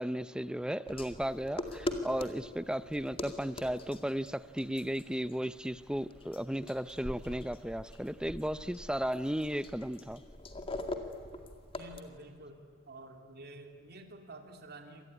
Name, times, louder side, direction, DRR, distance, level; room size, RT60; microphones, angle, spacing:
voice 1, 0.0-10.2, equal, 5° right, 0.6 m, -35 dB
sound 1, 0.8-12.0, left 1 dB, 30° left, 2.2 m, -43 dB
voice 2, 11.7-12.6 12.9-15.0, right 2 dB, 50° right, 2.7 m, -49 dB
26.5 x 19.0 x 9.7 m
head